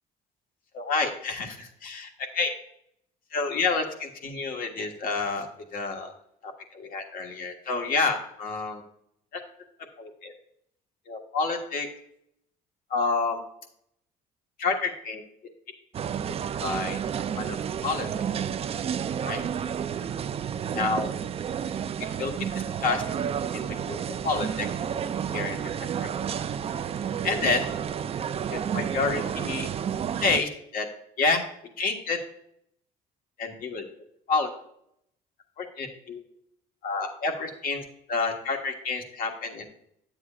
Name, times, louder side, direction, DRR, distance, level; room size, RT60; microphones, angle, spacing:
voice 1, 0.7-2.5 3.3-5.5 5.7-6.1 6.4-8.8 9.3-9.4 10.0-10.3 11.1-11.9 12.9-13.4 14.6-15.2 16.6-17.0 17.3-17.6 17.8-18.1 19.2-19.4 20.7-21.1 22.2-22.5 22.8-23.0 23.5-24.0 24.2-24.7 25.3-25.7 26.0-26.1 27.2-27.7 28.5-29.7 30.2-30.9 31.2-31.5 31.8-32.2 33.4-33.8 34.3-34.5 35.6-36.2 36.8-39.6, left 4 dB, 55° left, 2 dB, 1.5 m, -29 dB
sound 1, 15.9-30.4, right 8 dB, 35° right, 0.4 m, -31 dB
9.7 x 7.6 x 2.4 m, 0.74 s
cardioid pair, 110°, 17 cm